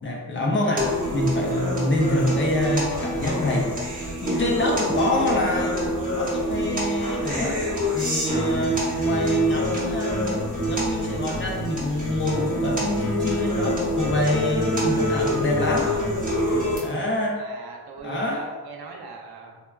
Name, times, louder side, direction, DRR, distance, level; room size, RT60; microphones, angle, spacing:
voice 1, 0.0-3.8 4.2-7.6 7.9-10.3 10.7-15.9 16.8-17.4 18.0-18.5, left 2 dB, 30° left, -1 dB, 0.4 m, -26 dB
sound 1, 0.8-16.8, equal, 20° right, 0.8 m, -25 dB
voice 2, 17.1-19.6, right 4 dB, 80° right, 1 dB, 0.6 m, -40 dB
3.3 x 2.2 x 2.2 m, 1.4 s
wide cardioid pair, 135°, 38 cm